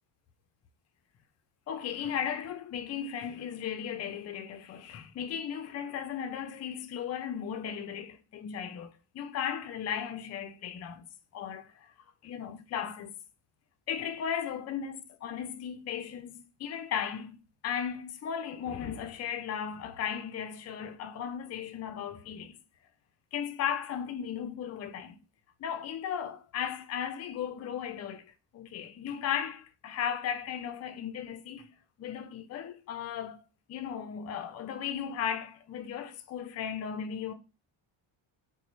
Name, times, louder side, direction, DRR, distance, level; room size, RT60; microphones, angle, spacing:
voice 1, 1.7-11.0 11.3-11.9 12.2-13.1 13.9-17.4 17.6-22.6 23.3-25.2 25.6-31.7 32.0-33.4 33.7-37.3, left 8 dB, 35° left, 0.4 m, -36 dB
2.9 x 2.1 x 3.9 m
cardioid pair, 110°, 45 cm